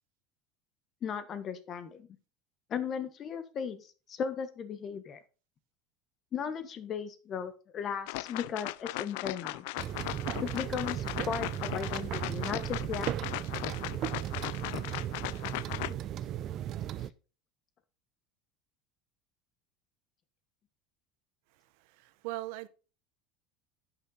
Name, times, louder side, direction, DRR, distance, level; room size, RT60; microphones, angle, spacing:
voice 1, 1.0-2.1 2.7-5.2 6.3-9.7 10.4-13.1 15.9-16.0, left 7 dB, 30° left, 1.1 m, -36 dB
sound 1, 8.1-15.9, left 20 dB, 75° left, 0.3 m, -38 dB
sound 2, 9.8-17.1, right 11 dB, 40° right, 0.4 m, -36 dB
voice 2, 21.5-22.7, right 17 dB, 70° right, 0.8 m, -41 dB
11.0 x 6.0 x 4.0 m
cardioid pair, 150°, 0 cm